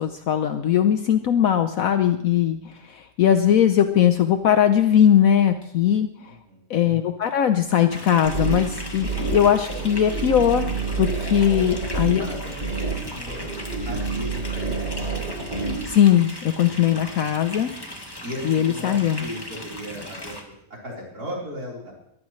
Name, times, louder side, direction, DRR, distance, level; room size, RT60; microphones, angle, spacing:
voice 1, 0.0-6.1 6.7-10.7 11.0-12.2 15.9-17.7 18.4-19.3, left 9 dB, 65° left, 8 dB, 1.2 m, -20 dB
voice 2, 6.2-6.7 11.6-15.1 18.2-20.3 20.8-21.9, equal, 80° right, -4 dB, 4.8 m, -36 dB
sound 1, 7.9-20.4, left 1 dB, 15° left, 1.9 m, -38 dB
sound 2, 8.2-15.9, right 4 dB, 35° right, 3.6 m, -28 dB
22.0 x 15.0 x 3.2 m, 0.77 s
omnidirectional pair, 1.6 m